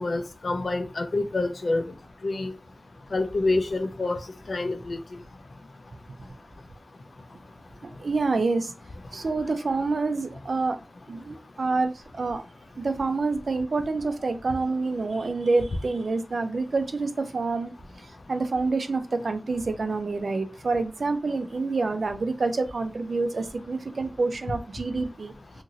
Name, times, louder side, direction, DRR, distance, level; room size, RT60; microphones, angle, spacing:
voice 1, 0.0-1.8 2.2-2.5 3.1-4.2 4.5-5.0, left 2 dB, 70° left, 0.4 m, -27 dB
voice 2, 8.0-8.7 9.1-10.8 11.1-12.4 12.8-17.7 18.3-25.3, right 3 dB, 85° right, 0.4 m, -27 dB
2.9 x 2.6 x 2.6 m
wide cardioid pair, 80°, 0 cm